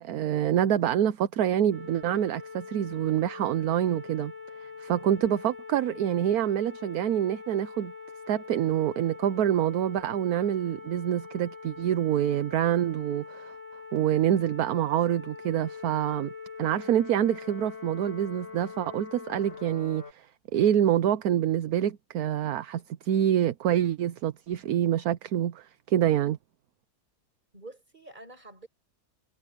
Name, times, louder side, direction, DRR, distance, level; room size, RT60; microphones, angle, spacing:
voice 1, 0.0-4.3 4.8-7.9 8.3-13.5 13.9-16.3 16.6-20.3 20.5-26.4, right 10 dB, 70° right, 1.2 m, -26 dB
sound 1, 1.7-20.1, left 5 dB, 50° left, 5.0 m, -43 dB
voice 2, 27.5-28.7, right 2 dB, 30° right, 6.1 m, -48 dB
omnidirectional pair, 1.7 m